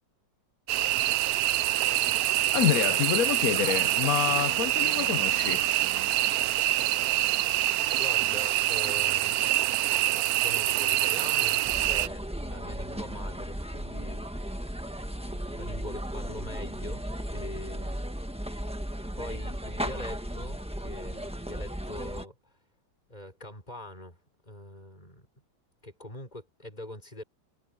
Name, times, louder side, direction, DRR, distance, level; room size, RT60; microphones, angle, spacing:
sound 1, 0.7-12.1, right 14 dB, 80° right, 0.8 m, -26 dB
voice 1, 2.5-5.8, left 11 dB, 70° left, 0.8 m, -27 dB
voice 2, 7.8-9.5 10.4-11.6 11.9-14.8 15.3-17.0 17.3-18.1 19.2-22.5 23.1-24.2 24.4-25.3 25.8-27.2, left 1 dB, 20° left, 5.9 m, -43 dB
sound 2, 11.6-22.3, equal, 5° right, 1.1 m, -35 dB
omnidirectional pair, 2.1 m